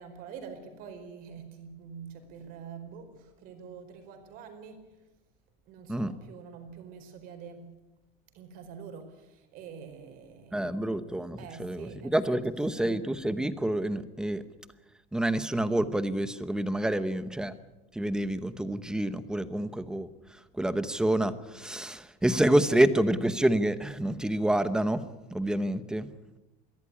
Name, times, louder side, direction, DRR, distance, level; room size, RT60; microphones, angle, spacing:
voice 1, 0.0-5.1 5.7-7.7 8.3-10.8 11.4-13.0 16.8-17.2, right 6 dB, 50° right, 7 dB, 4.6 m, -46 dB
voice 2, 10.5-14.4 15.1-17.5 17.9-25.0 25.3-26.1, right 1 dB, 5° right, 12 dB, 0.9 m, -28 dB
23.5 x 16.5 x 9.9 m, 1.0 s
cardioid pair, 175°, 18 cm